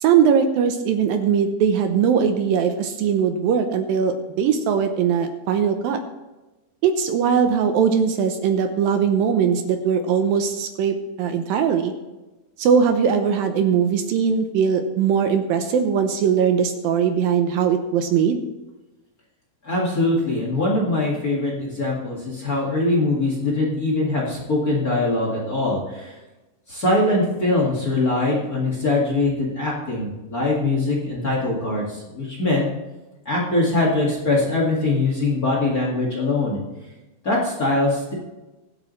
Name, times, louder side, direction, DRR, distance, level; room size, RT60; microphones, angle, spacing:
voice 1, 0.0-6.0 6.8-11.9 12.6-18.4, right 7 dB, 75° right, 6 dB, 2.3 m, -20 dB
voice 2, 19.6-26.1 26.7-32.7 33.2-36.6 37.2-38.1, left 2 dB, 40° left, -3 dB, 1.4 m, -22 dB
23.5 x 8.2 x 3.2 m, 1.1 s
omnidirectional pair, 4.8 m